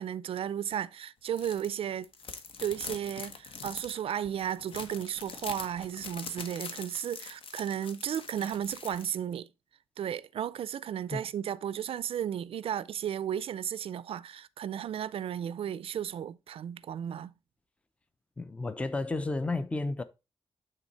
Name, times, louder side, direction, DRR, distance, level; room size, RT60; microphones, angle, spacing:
voice 1, 0.0-2.1 2.6-9.5 10.0-17.3, right 9 dB, 70° right, 0.4 m, -34 dB
sound 1, 1.3-1.7 2.0-9.1, left 5 dB, 65° left, 1.0 m, -43 dB
voice 2, 18.4-20.0, left 2 dB, 10° left, 0.5 m, -32 dB
9.0 x 3.9 x 4.0 m
wide cardioid pair, 175°, 10 cm